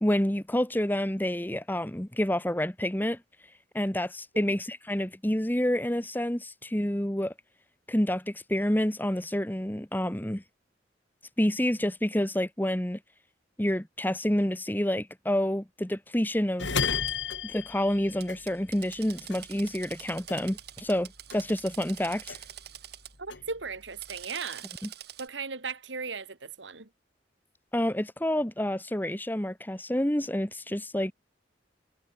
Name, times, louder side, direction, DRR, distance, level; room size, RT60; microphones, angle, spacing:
voice 1, 0.0-3.2 3.7-7.3 7.9-10.4 11.4-13.0 13.6-16.7 17.4-22.4 24.8-24.9 27.7-31.1, left 1 dB, 10° left, 1.4 m, -28 dB
sound 1, 16.6-19.0 19.3-21.0 21.3-22.7 23.1-24.2, left 6 dB, 80° left, 2.8 m, -34 dB
Drill, 17.1-17.2 18.2-23.1 23.8-25.3, right 11 dB, 60° right, 3.7 m, -45 dB
voice 2, 23.2-24.7 25.2-26.9, right 5 dB, 75° right, 2.1 m, -37 dB
head